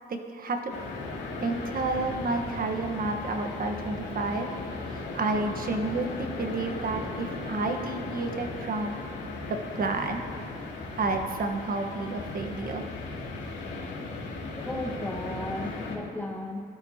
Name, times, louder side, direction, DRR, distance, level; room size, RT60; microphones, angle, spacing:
voice 1, 0.1-0.7 1.4-4.5 4.9-9.0 9.5-10.2 10.9-12.8, right 3 dB, 45° right, 5 dB, 1.4 m, -30 dB
sound 1, 0.7-16.0, left 3 dB, 65° left, 2.6 m, -37 dB
voice 2, 14.6-16.6, left 1 dB, 10° left, 1 dB, 1.6 m, -35 dB
18.0 x 12.0 x 2.9 m, 2.2 s
cardioid pair, 90°, 20 cm